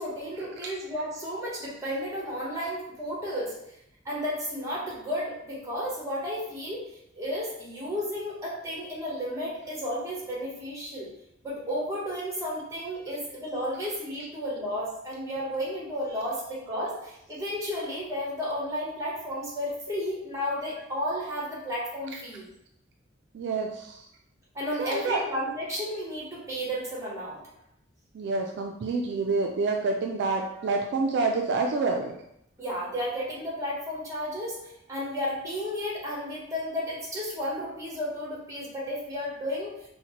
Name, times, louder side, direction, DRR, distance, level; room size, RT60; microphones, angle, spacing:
voice 1, 0.0-3.6 4.0-6.8 7.1-11.1 11.4-22.5 24.5-27.4 32.6-39.7, equal, 15° right, -5 dB, 1.1 m, -33 dB
voice 2, 23.3-24.1 24.8-25.2 28.1-32.1, right 3 dB, 60° right, 2 dB, 0.3 m, -28 dB
4.1 x 2.1 x 2.9 m, 0.78 s
head